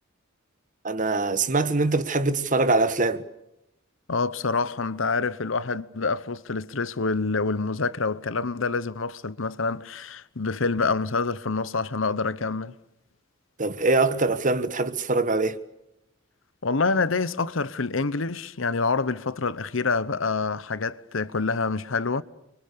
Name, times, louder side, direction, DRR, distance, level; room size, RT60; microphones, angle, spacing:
voice 1, 0.8-3.2 13.6-15.6, right 3 dB, 40° right, 1.4 m, -23 dB
voice 2, 4.1-12.8 16.6-22.2, left 4 dB, 70° left, 1.0 m, -27 dB
29.5 x 25.0 x 6.8 m
head